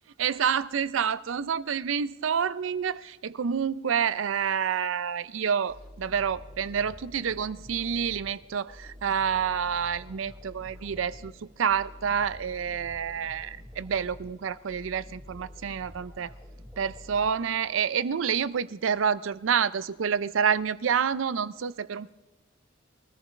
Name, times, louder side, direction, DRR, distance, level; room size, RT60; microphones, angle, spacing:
voice 1, 0.2-16.3 16.8-22.1, right 7 dB, 75° right, 0.4 m, -28 dB
sound 1, 5.7-17.9, left 1 dB, 10° right, 3.1 m, -48 dB
22.5 x 14.5 x 3.2 m
head